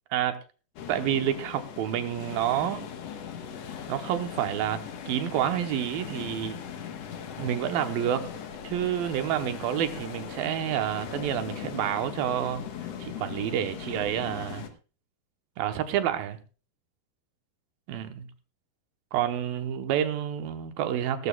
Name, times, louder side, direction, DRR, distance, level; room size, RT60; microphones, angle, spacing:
sound 1, 0.8-14.7, left 8 dB, 80° left, 1.4 m, -39 dB
voice 1, 0.9-2.9 3.9-4.8 5.1-6.6 7.4-8.2 8.6-12.7 13.0-14.7 15.6-16.4 17.9-18.3 19.1-21.3, right 10 dB, 75° right, 2.7 m, -28 dB
19.0 x 12.0 x 2.3 m
omnidirectional pair, 4.4 m